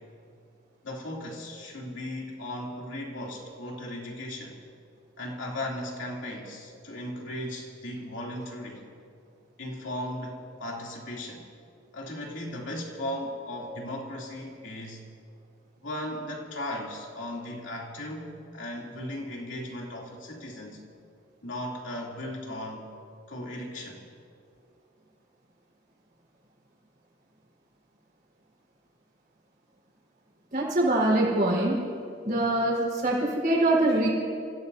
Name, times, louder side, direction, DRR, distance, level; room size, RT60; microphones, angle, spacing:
voice 1, 0.8-4.6 5.2-8.8 9.6-11.5 11.9-15.0 15.8-20.8 21.4-23.0 23.3-24.0, left 1 dB, 70° left, -2 dB, 3.0 m, -37 dB
voice 2, 30.5-31.8 32.2-34.1, right 1 dB, 45° right, -3 dB, 4.5 m, -24 dB
29.5 x 16.5 x 2.8 m, 2.4 s
head